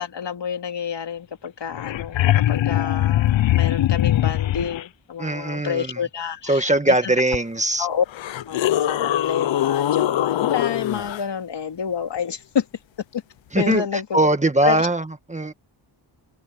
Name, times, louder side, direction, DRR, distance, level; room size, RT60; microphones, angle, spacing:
voice 1, 0.0-6.7 7.0-7.1 7.8-8.0 8.4-12.7 13.1-13.2 13.6-14.2 14.6-14.8, left 8 dB, 65° left, 2.9 m, -28 dB
sound 1, 1.4-1.5 1.7-4.8 7.3-7.4 8.1-11.2 13.7-13.8, left 13 dB, 80° left, 0.7 m, -22 dB
voice 2, 5.2-6.0 6.4-7.9 13.5-15.5, right 1 dB, 15° right, 1.6 m, -21 dB
wide cardioid pair, 130°, 45 cm